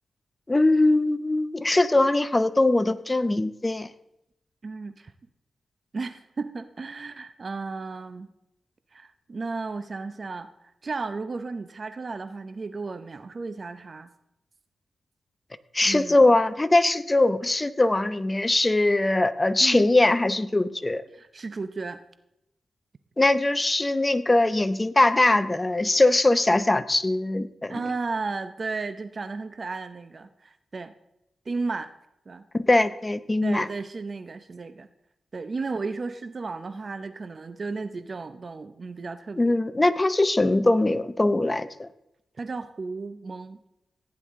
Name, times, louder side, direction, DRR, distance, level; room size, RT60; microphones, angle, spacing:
voice 1, 0.5-3.9 15.7-21.0 23.2-27.8 32.5-33.7 39.4-41.9, left 2 dB, 25° left, 13 dB, 0.7 m, -21 dB
voice 2, 4.6-5.1 5.9-8.3 8.9-14.1 15.8-16.2 19.6-19.9 21.1-22.0 27.7-30.9 31.5-31.9 32.3-32.5 33.4-34.9 35.3-39.6 42.4-43.6, right 4 dB, 50° right, 11 dB, 0.7 m, -34 dB
16.0 x 9.9 x 3.7 m, 0.84 s
cardioid pair, 70°, 0 cm